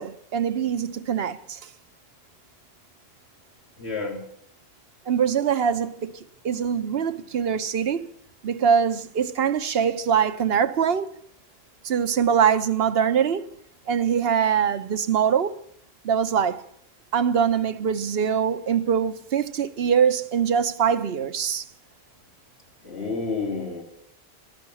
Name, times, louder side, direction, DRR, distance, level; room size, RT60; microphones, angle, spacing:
voice 1, 0.0-1.6 5.1-6.1 6.4-8.1 8.4-11.1 11.8-13.5 13.9-15.6 16.0-16.6 17.1-21.6, right 7 dB, 70° right, 1.1 m, -23 dB
voice 2, 3.8-4.2 22.8-23.8, left 4 dB, 85° left, 3.3 m, -29 dB
14.0 x 10.5 x 9.8 m
omnidirectional pair, 1.1 m